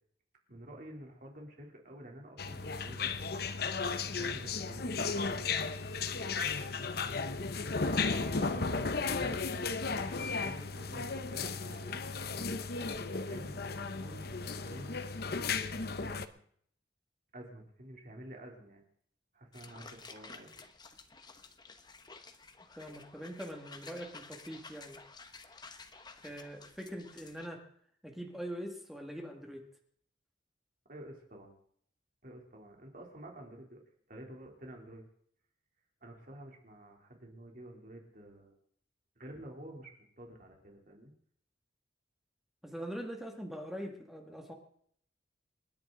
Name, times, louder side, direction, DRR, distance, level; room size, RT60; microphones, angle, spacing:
voice 1, 0.5-3.1 4.1-5.5 6.1-6.8 7.8-12.0 13.3-15.0 15.5-16.4 17.3-18.8 19.3-20.7 30.8-31.5 32.2-33.8 34.1-35.0 36.0-38.6 39.2-41.1, right 1 dB, 50° right, 0 dB, 3.3 m, -50 dB
sound 1, 2.4-16.2, left 4 dB, 60° left, 0.9 m, -35 dB
sound 2, 19.5-27.5, left 4 dB, 25° left, 1.1 m, -52 dB
voice 2, 22.8-25.0 26.2-27.6 28.0-29.6 42.6-44.5, equal, ahead, 2 dB, 2.1 m, -43 dB
29.0 x 10.5 x 3.9 m, 0.63 s
head